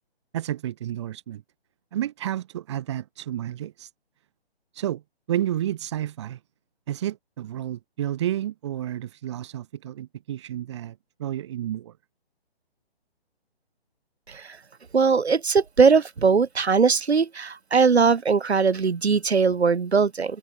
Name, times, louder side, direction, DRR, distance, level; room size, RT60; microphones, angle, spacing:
voice 1, 0.3-1.4 1.9-3.9 4.8-5.0 5.3-6.4 6.9-10.9 11.2-11.9, right 12 dB, 25° right, 2.2 m, -30 dB
voice 2, 14.3-14.6 14.9-20.4, right 5 dB, 85° right, 4.9 m, -20 dB
hypercardioid pair, 170°, 32 cm